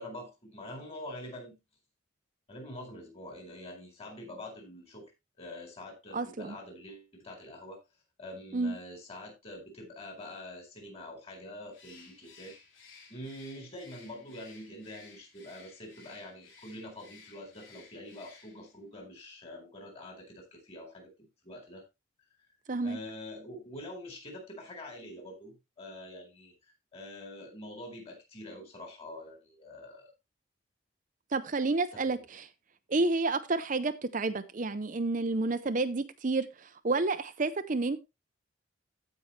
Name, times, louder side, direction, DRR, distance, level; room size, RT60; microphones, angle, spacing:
voice 1, 0.0-1.5 2.5-5.1 5.4-7.8 8.2-12.5 13.1-21.1 21.4-21.8 22.8-30.1 31.9-32.0, left 1 dB, 30° left, 4.2 m, -45 dB
voice 2, 6.1-6.6 8.5-8.8 22.7-23.0 31.3-32.5 32.9-38.0, right 3 dB, 40° right, 0.6 m, -30 dB
Bird, 11.7-18.8, left 4 dB, 75° left, 3.4 m, -56 dB
15.5 x 5.5 x 3.2 m
head